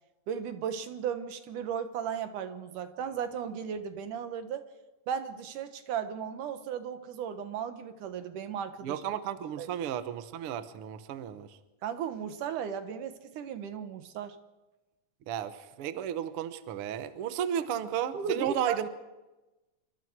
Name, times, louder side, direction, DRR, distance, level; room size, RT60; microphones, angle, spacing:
voice 1, 0.3-4.7 5.1-9.0 9.6-9.7 11.8-14.4 18.1-18.9, right 7 dB, 80° right, 9 dB, 2.8 m, -35 dB
voice 2, 8.8-11.6 15.3-18.9, right 10 dB, 60° right, 11 dB, 1.6 m, -33 dB
27.0 x 24.5 x 4.7 m, 1.1 s
omnidirectional pair, 3.6 m